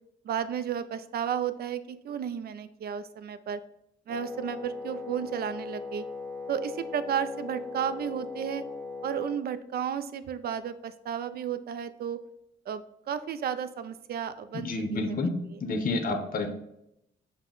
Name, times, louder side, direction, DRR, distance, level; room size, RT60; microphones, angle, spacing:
voice 1, 0.2-3.6 4.1-6.0 6.5-8.6 9.0-12.2 12.7-15.6, right 8 dB, 50° right, 12 dB, 0.4 m, -33 dB
Wind instrument woodwind instrument, 4.1-9.4, left 4 dB, ahead, 0.5 m, -39 dB
voice 2, 14.5-16.5, left 2 dB, 45° left, 6 dB, 0.7 m, -29 dB
6.0 x 2.1 x 3.7 m, 0.80 s
cardioid pair, 90°, 20 cm